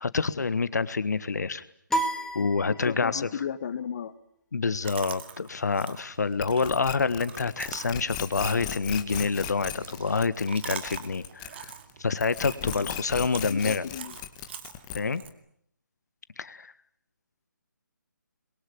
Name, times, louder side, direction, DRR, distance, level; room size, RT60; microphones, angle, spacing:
voice 1, 0.0-1.6 2.3-3.5 4.5-11.7 12.0-13.9 14.9-15.2 16.4-16.7, left 4 dB, 60° left, 14 dB, 1.5 m, -27 dB
sound 1, 1.9-3.3, right 1 dB, 5° left, 1.7 m, -31 dB
voice 2, 2.8-4.1 12.8-12.9 13.5-14.2, left 8 dB, 40° left, 10 dB, 1.4 m, -34 dB
Chewing mastication, 4.8-15.3, right 7 dB, 35° right, 2.2 m, -44 dB
sound 2, 6.4-11.9 12.2-15.3, left 11 dB, 20° left, 1.6 m, -37 dB
28.0 x 22.5 x 9.4 m, 0.71 s
figure-of-eight pair, 150°, 10 cm